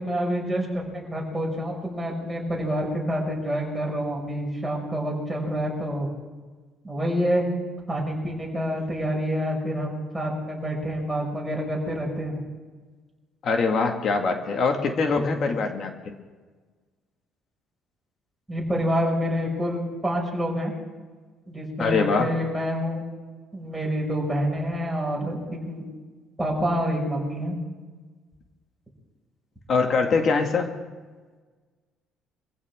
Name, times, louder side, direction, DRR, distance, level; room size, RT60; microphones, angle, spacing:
voice 1, 0.0-6.1 6.8-7.5 7.9-12.3 18.5-20.7 21.5-23.0 23.5-25.8 26.4-27.6, equal, 5° right, -3 dB, 5.9 m, -27 dB
voice 2, 13.4-16.1 21.8-22.3 29.7-30.7, left 4 dB, 45° left, 4 dB, 2.0 m, -23 dB
24.5 x 15.5 x 3.7 m, 1.4 s
cardioid pair, 130°, 0 cm